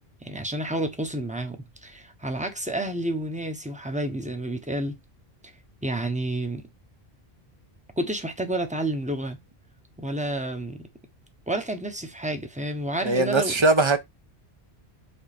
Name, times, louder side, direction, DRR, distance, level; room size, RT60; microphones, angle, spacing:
voice 1, 0.2-4.9 5.8-6.6 8.0-9.4 10.0-10.8 11.5-13.6, right 1 dB, 5° right, 1.1 m, -30 dB
voice 2, 13.0-14.0, right 3 dB, 30° right, 1.0 m, -20 dB
5.6 x 4.0 x 4.2 m
omnidirectional pair, 1.0 m